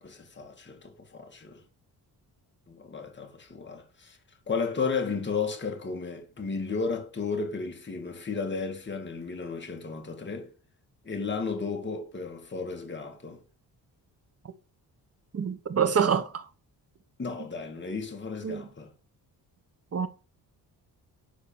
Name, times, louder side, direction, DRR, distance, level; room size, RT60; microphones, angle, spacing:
voice 1, 0.0-1.6 2.7-4.2 4.5-10.5 11.0-13.4 17.2-18.9, left 4 dB, 30° left, 2.3 m, -33 dB
voice 2, 15.3-16.3 18.4-18.6 19.9-20.1, right 7 dB, 40° right, 1.2 m, -25 dB
11.5 x 4.1 x 7.1 m
cardioid pair, 120°, 39 cm